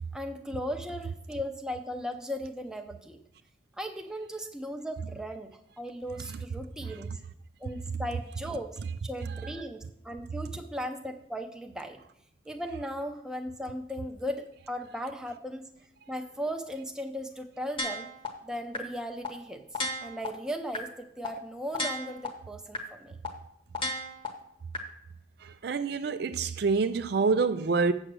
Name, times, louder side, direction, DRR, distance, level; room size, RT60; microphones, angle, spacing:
voice 1, 0.1-3.2 3.8-7.2 7.6-12.0 12.4-15.7 16.1-18.1 18.4-23.2, equal, 5° right, 0.7 m, -37 dB
Guitar Metronome, 17.8-18.3 18.7-18.8 19.2-19.3 19.7-20.3 20.7-20.8 21.2-21.3 21.7-22.3 22.7-22.8 23.2-23.3 23.7-24.3 24.7-24.8, left 2 dB, 25° left, 1.1 m, -32 dB
voice 2, 25.4-27.9, right 4 dB, 55° right, 0.4 m, -27 dB
7.9 x 6.2 x 6.2 m
head